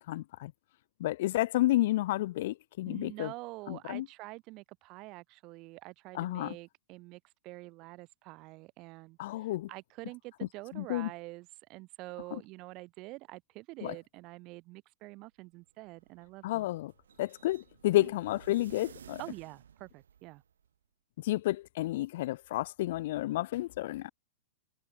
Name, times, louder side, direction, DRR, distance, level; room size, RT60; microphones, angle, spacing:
voice 1, 0.1-0.5 1.0-3.3 3.7-4.1 6.1-6.6 9.2-9.7 10.7-11.1 12.3-12.4 13.8-13.9 16.4-16.9 17.2-19.2 21.2-24.1, left 16 dB, 65° left, 0.3 m, -31 dB
voice 2, 2.8-16.7 18.0-18.1 19.2-20.4, right 22 dB, 45° right, 3.6 m, -46 dB
sound 1, 15.6-20.7, right 8 dB, 80° right, 1.7 m, -55 dB
hypercardioid pair, 115°, 0 cm